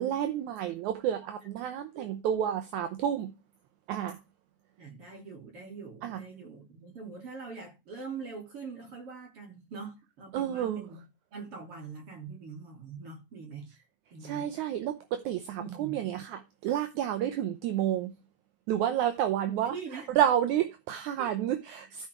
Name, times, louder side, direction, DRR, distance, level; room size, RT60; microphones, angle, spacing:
voice 1, 0.0-3.3 3.9-4.2 6.0-6.2 10.3-10.8 14.2-18.1 18.7-19.8 20.1-22.1, right 10 dB, 75° right, 2.1 m, -30 dB
voice 2, 4.8-11.0 11.3-13.7 14.1-14.5 15.6-16.0 19.7-20.1 21.2-21.3, right 5 dB, 45° right, 4.1 m, -43 dB
14.5 x 4.9 x 4.7 m
omnidirectional pair, 3.6 m